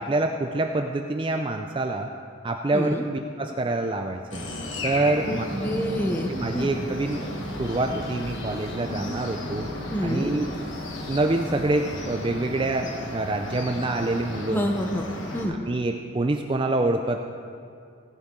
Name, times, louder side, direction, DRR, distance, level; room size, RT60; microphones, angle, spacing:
voice 1, 0.0-2.1 2.4-4.4 4.8-5.4 6.3-7.2 7.6-9.7 10.0-10.5 11.1-14.7 15.6-17.2, right 2 dB, 25° right, 4 dB, 0.4 m, -26 dB
voice 2, 2.7-3.1 5.3-6.7 9.9-10.3 14.5-15.1 15.3-15.6, equal, 10° left, 3 dB, 0.7 m, -27 dB
sound 1, 4.3-15.4, left 1 dB, 65° left, 1.4 m, -35 dB
sound 2, 5.4-12.0, right 1 dB, 30° left, 2.1 m, -38 dB
17.0 x 10.5 x 3.7 m, 2.3 s
head